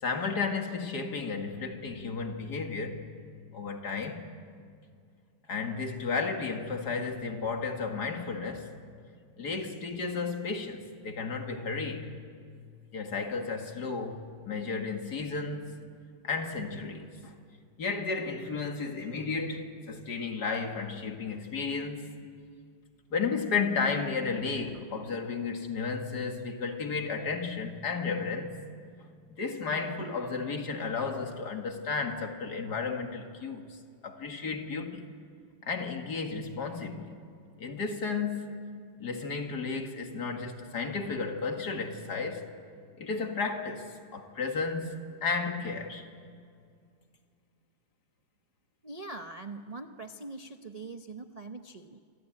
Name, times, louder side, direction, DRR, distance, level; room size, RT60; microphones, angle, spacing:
voice 1, 0.0-3.0 3.5-4.2 5.5-8.7 9.4-12.1 12.9-15.7 16.2-17.3 17.8-22.1 23.1-28.6 29.3-33.8 34.0-35.1 35.6-37.2 37.6-38.6 39.0-42.5 43.0-46.1, left 4 dB, 55° left, 2.5 m, -33 dB
voice 2, 48.8-52.0, right 3 dB, 50° right, 0.4 m, -42 dB
27.0 x 24.0 x 9.0 m
omnidirectional pair, 2.2 m